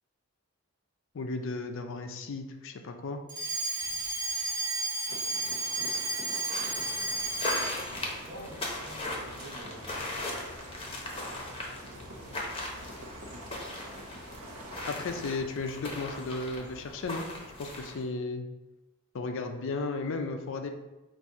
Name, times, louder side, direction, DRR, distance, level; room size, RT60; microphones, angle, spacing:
voice 1, 1.1-3.2 14.9-17.3 17.6-18.5 19.1-20.7, left 3 dB, 60° left, 6 dB, 0.5 m, -34 dB
Alarm, 3.3-7.9, right 2 dB, 40° right, 1.2 m, -32 dB
sound 1, 5.1-15.4, right 1 dB, 85° right, 0.8 m, -47 dB
sound 2, 6.5-18.1, left 2 dB, 25° left, 0.7 m, -39 dB
voice 2, 8.0-10.6 11.8-12.7, right 1 dB, 60° right, -2 dB, 1.2 m, -49 dB
4.2 x 2.6 x 4.7 m, 1.1 s
head